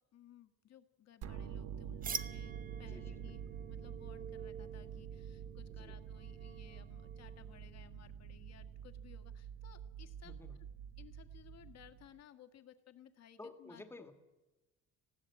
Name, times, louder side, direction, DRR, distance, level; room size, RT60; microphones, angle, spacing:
voice 1, 0.0-3.4 3.7-10.4 11.0-14.1, left 10 dB, 50° left, 7 dB, 1.6 m, -60 dB
sound 1, 1.2-12.2, right 8 dB, 50° right, 1.0 m, -47 dB
sound 2, 2.0-7.6, right 7 dB, 25° right, 0.7 m, -48 dB
voice 2, 2.8-3.4 5.8-5.9 10.2-10.6 13.4-14.1, left 2 dB, 5° left, 8 dB, 1.7 m, -52 dB
19.5 x 16.0 x 8.6 m, 1.1 s
cardioid pair, 150°, 33 cm